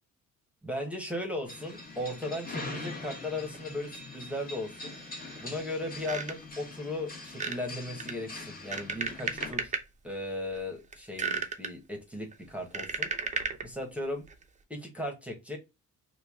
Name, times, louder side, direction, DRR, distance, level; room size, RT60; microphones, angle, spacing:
voice 1, 0.6-5.0 5.4-9.8 10.0-13.1 13.6-14.2 14.7-15.6, left 1 dB, 5° right, 2 dB, 1.0 m, -37 dB
sound 1, 1.5-9.5, left 3 dB, 30° left, 1.3 m, -43 dB
sound 2, 3.5-3.6 3.9-4.0 4.7-5.5 5.8-6.6 7.3-7.6 8.0-9.8 10.4-10.6 10.9-11.7 12.3-13.7 14.3-14.4, right 5 dB, 25° right, 0.5 m, -34 dB
3.0 x 2.3 x 3.5 m, 0.24 s
cardioid pair, 90°, 30 cm